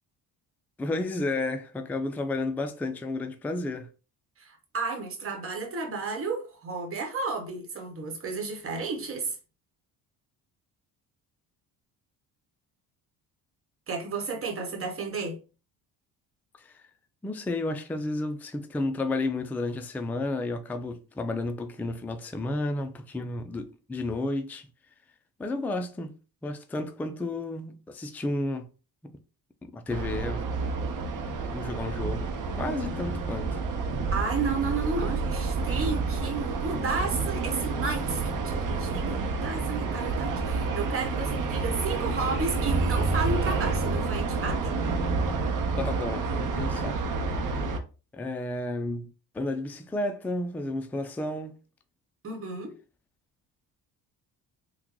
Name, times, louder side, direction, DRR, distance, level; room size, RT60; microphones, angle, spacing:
voice 1, 0.8-3.9 16.6-16.8 17.2-24.7 25.4-26.1 26.4-28.7 29.0-29.1 29.6-30.4 31.3-33.6 45.8-47.0 48.1-51.5, left 2 dB, 5° left, 0.3 m, -32 dB
voice 2, 4.4-9.4 13.9-15.4 34.1-44.7 52.2-52.7, right 4 dB, 35° right, 1.1 m, -32 dB
sound 1, 29.9-47.8, right 4 dB, 55° right, 0.7 m, -29 dB
3.7 x 2.2 x 3.0 m
cardioid pair, 90°, 39 cm